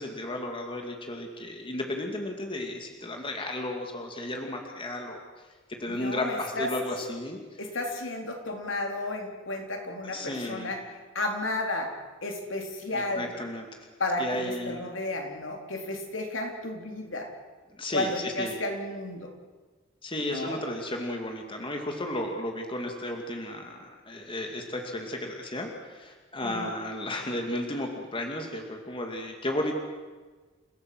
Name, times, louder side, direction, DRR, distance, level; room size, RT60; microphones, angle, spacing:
voice 1, 0.0-5.2 5.7-7.6 10.0-10.7 12.9-13.9 14.2-14.8 17.8-18.5 20.0-29.7, left 1 dB, 25° left, 2 dB, 2.5 m, -34 dB
voice 2, 5.9-6.7 7.6-10.8 11.1-12.0 12.2-13.3 14.0-17.3 17.9-19.3 20.2-20.6 26.4-26.7, left 2 dB, 70° left, 3 dB, 4.1 m, -32 dB
29.5 x 16.5 x 7.9 m, 1.4 s
head